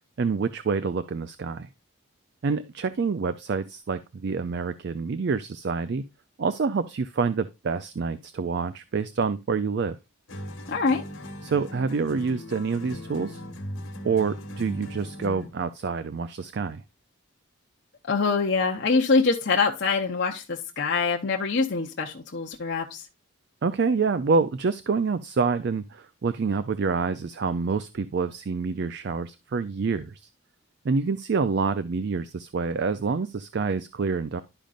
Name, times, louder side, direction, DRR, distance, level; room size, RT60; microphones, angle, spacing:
voice 1, 0.2-1.7 2.4-6.0 6.4-10.0 11.4-13.4 14.0-16.8 23.6-30.3 30.8-34.4, right 4 dB, 50° right, 13 dB, 0.4 m, -27 dB
sound 1, 10.3-15.6, left 1 dB, 70° left, 1.3 m, -39 dB
voice 2, 10.7-11.0 18.1-23.1, left 4 dB, 55° left, 0 dB, 0.8 m, -24 dB
12.0 x 5.1 x 2.4 m, 0.25 s
head